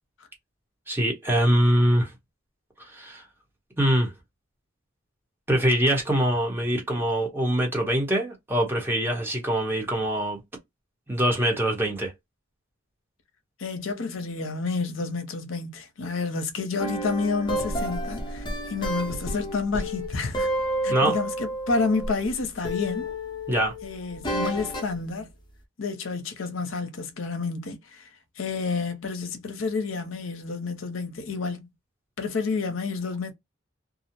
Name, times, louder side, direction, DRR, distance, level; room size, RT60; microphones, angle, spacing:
voice 1, 0.9-2.1 2.8-3.2 3.8-4.1 5.5-10.4 11.1-12.1 20.9-21.1 23.5-23.7, right 1 dB, 10° right, 0.9 m, -23 dB
voice 2, 13.6-20.5 20.8-23.1 23.8-25.3 25.8-28.1 28.4-31.7 32.2-33.3, left 4 dB, 80° left, 0.6 m, -29 dB
sound 1, 16.8-22.3 22.6-25.0, right 1 dB, 20° left, 0.6 m, -30 dB
2.4 x 2.0 x 2.7 m
head